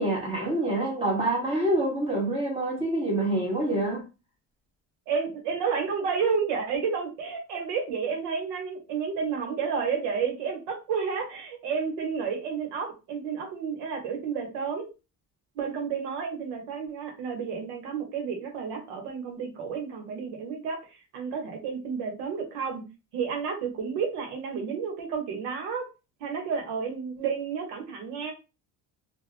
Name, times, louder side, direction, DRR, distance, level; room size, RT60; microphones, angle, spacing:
voice 1, 0.0-4.0, right 1 dB, 15° right, -2 dB, 1.4 m, -26 dB
voice 2, 5.1-14.9 15.5-22.8 23.1-25.8 26.2-28.3, right 6 dB, 85° right, 3 dB, 1.1 m, -31 dB
2.5 x 2.4 x 3.1 m, 0.29 s
cardioid pair, 125°, 41 cm